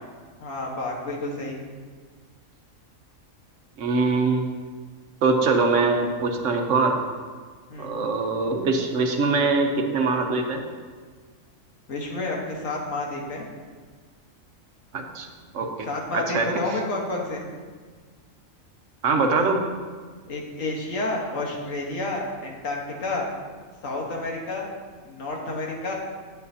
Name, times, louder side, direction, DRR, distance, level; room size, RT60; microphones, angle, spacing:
voice 1, 0.4-1.6 7.7-7.9 11.9-13.5 15.8-17.5 20.3-23.3 23.8-24.7 25.0-25.9, left 2 dB, 75° left, -1 dB, 1.7 m, -30 dB
voice 2, 3.8-4.4 5.2-7.0 7.8-10.6 14.9-15.3 15.5-15.9 16.1-16.5 19.0-19.6, right 3 dB, 70° right, 4 dB, 1.1 m, -23 dB
10.5 x 8.4 x 2.8 m, 1.5 s
omnidirectional pair, 1.4 m